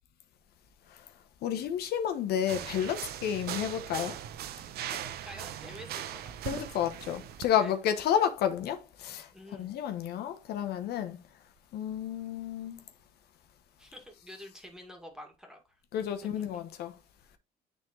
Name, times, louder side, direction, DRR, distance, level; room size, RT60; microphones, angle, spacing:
voice 1, 1.4-4.2 6.4-11.2 11.7-12.8 15.9-16.9, left 9 dB, 70° left, 0.9 m, -31 dB
sound 1, 2.4-7.5, right 10 dB, 70° right, 0.7 m, -39 dB
voice 2, 4.8-6.6 7.5-7.7 9.3-9.7 13.8-15.6, equal, 5° right, 2.1 m, -48 dB
9.4 x 3.7 x 3.1 m
cardioid pair, 110°, 17 cm